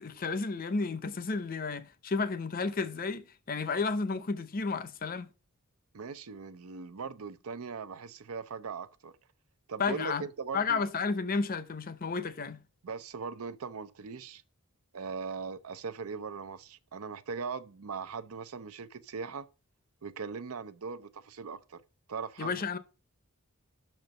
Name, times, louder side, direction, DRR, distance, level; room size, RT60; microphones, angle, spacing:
voice 1, 0.0-5.3 9.8-10.2 10.5-12.6 22.4-22.8, left 4 dB, 40° left, 0.6 m, -32 dB
voice 2, 5.9-9.1 9.7-10.8 12.8-14.4 14.9-19.5 20.0-21.8 22.1-22.5, right 5 dB, 75° right, 0.6 m, -40 dB
6.2 x 4.4 x 6.3 m
head